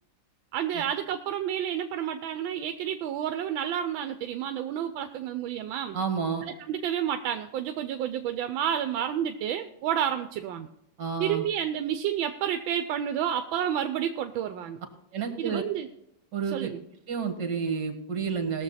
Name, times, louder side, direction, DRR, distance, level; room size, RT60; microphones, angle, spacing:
voice 1, 0.5-6.0 6.7-10.7 11.2-14.8 15.4-15.9 16.5-16.8, right 9 dB, 80° right, 8 dB, 1.4 m, -30 dB
voice 2, 5.9-6.4 11.0-11.5 15.1-15.6 16.3-16.7 17.1-18.6, right 6 dB, 60° right, 5 dB, 2.2 m, -30 dB
19.5 x 7.0 x 4.1 m, 0.81 s
omnidirectional pair, 2.2 m